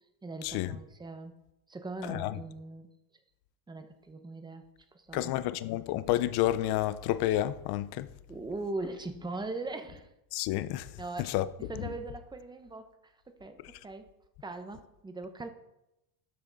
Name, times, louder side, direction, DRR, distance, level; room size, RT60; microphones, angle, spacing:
voice 1, 0.2-1.3 1.7-2.9 3.7-4.6 4.9-5.3 8.3-10.1 11.0-14.1 14.4-15.5, right 2 dB, 10° right, 0.7 m, -40 dB
voice 2, 5.1-8.1 10.3-10.9 11.2-11.4, left 14 dB, 50° left, 0.6 m, -30 dB
12.0 x 6.3 x 3.9 m
cardioid pair, 140°, 50 cm